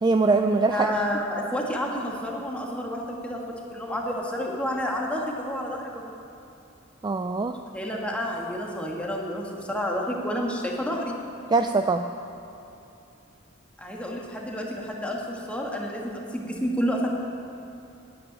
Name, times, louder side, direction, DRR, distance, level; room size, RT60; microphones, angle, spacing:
voice 1, 0.0-0.9 7.0-7.6 11.5-12.1, right 3 dB, 20° right, 6 dB, 0.3 m, -22 dB
voice 2, 0.7-6.1 7.7-11.2 13.8-17.1, equal, 5° left, -1 dB, 1.6 m, -30 dB
10.0 x 9.6 x 9.1 m, 2.7 s
head